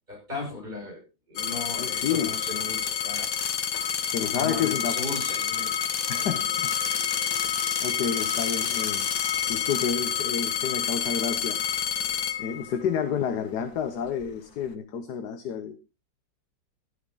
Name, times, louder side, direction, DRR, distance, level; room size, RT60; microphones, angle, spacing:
voice 1, 0.1-3.3 4.3-5.8, left 3 dB, 20° right, -1 dB, 6.0 m, -36 dB
sound 1, 1.4-13.1 13.8-14.4, left 8 dB, 75° left, 1.8 m, -29 dB
voice 2, 1.8-2.3 4.1-5.0 6.1-6.7 7.4-9.1 9.5-11.6 12.4-15.8, left 7 dB, 60° left, 8 dB, 1.4 m, -30 dB
sound 2, 2.9-4.4 4.7-6.2 6.6-9.3 9.7-9.9, left 5 dB, 35° left, 0.9 m, -35 dB
12.0 x 11.5 x 3.8 m, 0.29 s
omnidirectional pair, 2.1 m